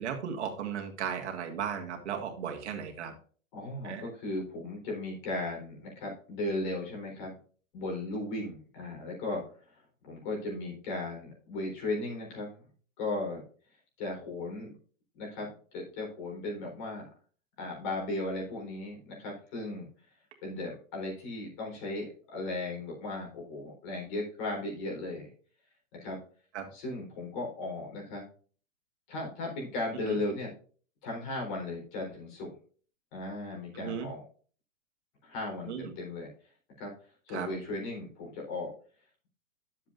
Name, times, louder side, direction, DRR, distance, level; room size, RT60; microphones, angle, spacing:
voice 1, 0.0-3.1 3.8-4.1 26.5-26.7 30.1-30.2 33.7-34.1 35.7-35.9 37.3-37.5, right 8 dB, 60° right, 3 dB, 1.9 m, -36 dB
voice 2, 3.5-7.3 7.7-9.4 9.7-12.5 13.0-13.4 14.0-14.7 15.2-17.1 17.6-19.9 20.4-25.3 26.0-26.2 26.7-28.3 29.1-30.5 31.0-32.5 33.1-34.2 35.2-36.3 36.8-36.9 37.3-38.7, left 2 dB, 40° left, -1 dB, 4.1 m, -36 dB
11.0 x 7.5 x 2.6 m, 0.42 s
hypercardioid pair, 165°, 39 cm